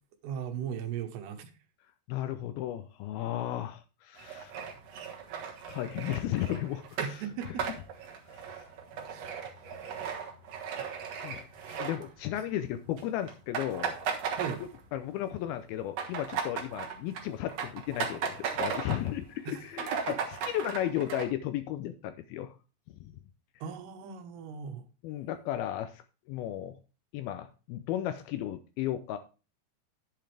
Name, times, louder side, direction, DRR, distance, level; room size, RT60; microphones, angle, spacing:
voice 1, 0.2-1.5 7.0-7.7 9.0-9.3 14.4-14.6 19.5-19.6 19.9-20.2 23.6-24.8, right 8 dB, 80° right, 3.0 m, -37 dB
voice 2, 2.1-4.5 5.7-7.2 7.6-7.7 8.3-8.7 10.1-10.2 10.6-10.7 11.2-11.5 11.8-13.9 14.9-20.2 20.4-22.5 23.0-23.1 25.0-26.0 26.3-26.8 27.1-29.2, left 12 dB, 80° left, 2.2 m, -34 dB
sound 1, 4.2-12.6 12.8-13.0 13.3-15.1 15.4-19.1 19.5-19.6 19.7-21.2, right 7 dB, 60° right, 1.8 m, -37 dB
10.5 x 7.7 x 3.4 m
omnidirectional pair, 4.8 m